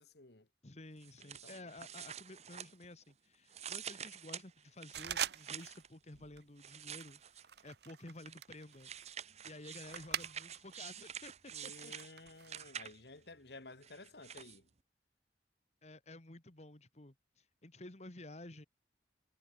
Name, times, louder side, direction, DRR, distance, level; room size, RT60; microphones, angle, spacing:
voice 1, 0.0-0.5 1.2-1.6 11.5-14.7, left 2 dB, 70° left, 2.3 m, -54 dB
voice 2, 0.6-8.9 9.4-11.9 15.8-18.7, left 2 dB, 40° left, 1.8 m, -52 dB
sound 1, 1.0-3.1 3.5-5.9 6.6-7.6 8.2-13.2 13.8-14.6, right 9 dB, 40° right, 1.0 m, -48 dB
sound 2, 4.9-5.9 6.1-6.5 7.0-10.8 11.1-12.6, right 9 dB, 65° right, 0.8 m, -43 dB
head